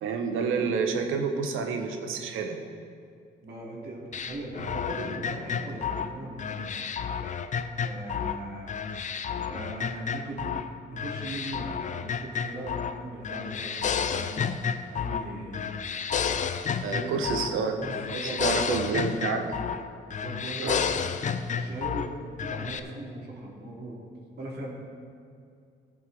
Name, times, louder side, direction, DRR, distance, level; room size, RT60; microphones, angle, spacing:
voice 1, 0.0-2.6 16.8-17.8 18.1-19.4 20.6-20.8, right 5 dB, 90° right, 5 dB, 1.0 m, -29 dB
voice 2, 3.4-6.7 7.8-8.7 9.3-10.6 10.9-14.6 14.9-15.7 16.9-17.4 17.8-19.4 20.1-20.8 21.5-24.0 24.4-24.7, right 1 dB, 55° right, -3 dB, 2.6 m, -39 dB
sound 1, 4.1-8.4 8.7-10.7 11.0-13.0 13.2-15.3 15.5-17.6 17.8-19.8 20.1-22.1 22.4-22.8, left 7 dB, 40° left, 0.5 m, -31 dB
15.5 x 7.2 x 3.5 m, 2.4 s
cardioid pair, 90°, 20 cm